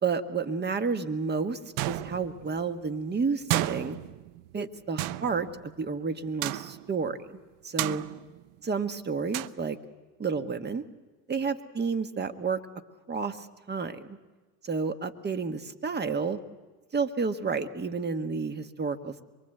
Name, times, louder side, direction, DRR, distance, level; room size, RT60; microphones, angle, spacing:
voice 1, 0.0-1.6 1.9-4.0 4.5-7.3 7.6-8.0 8.6-9.8 10.2-10.8 11.3-12.6 13.1-14.1 14.6-16.4 16.9-19.2, right 5 dB, 20° right, 9 dB, 1.5 m, -30 dB
sound 1, 1.8-2.6 3.5-4.6 5.0-5.9 6.4-7.0 7.8-8.6 9.3-9.5, right 17 dB, 60° right, 0.9 m, -32 dB
24.5 x 23.0 x 7.9 m, 1.3 s
hypercardioid pair, 95°, 49 cm